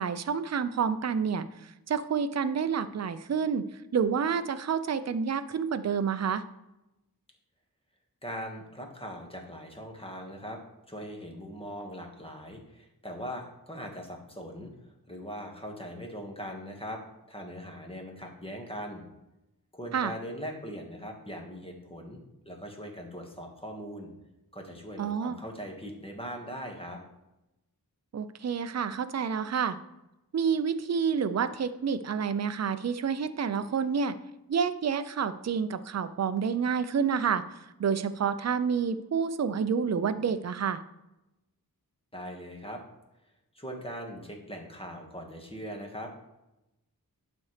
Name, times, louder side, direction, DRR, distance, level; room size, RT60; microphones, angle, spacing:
voice 1, 0.0-3.6 3.9-6.4 19.9-20.1 25.0-25.4 28.1-29.8 30.3-34.2 34.5-37.4 37.8-40.8, right 6 dB, 45° right, 11 dB, 0.5 m, -29 dB
voice 2, 8.2-10.6 10.9-17.0 17.3-19.0 19.7-22.2 22.4-24.1 24.5-27.0 42.1-42.8 43.5-46.1, equal, 15° left, 1 dB, 1.5 m, -40 dB
11.5 x 4.2 x 3.2 m, 0.94 s
wide cardioid pair, 70°, 37 cm